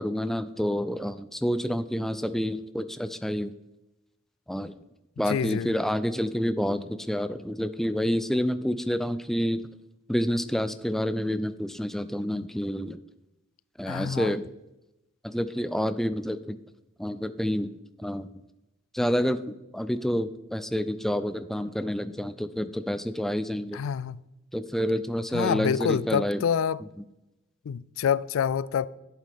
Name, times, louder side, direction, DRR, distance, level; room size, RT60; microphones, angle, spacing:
voice 1, 0.0-3.5 4.5-4.7 5.2-9.6 10.1-13.0 13.8-14.5 15.2-16.6 17.0-17.7 18.0-18.3 18.9-19.4 19.7-23.8 24.5-26.4, equal, ahead, 0.3 m, -28 dB
voice 2, 5.3-5.7 13.9-14.3 23.7-24.2 25.3-26.8 27.7-28.9, left 7 dB, 80° left, 0.3 m, -27 dB
11.5 x 8.3 x 3.5 m
head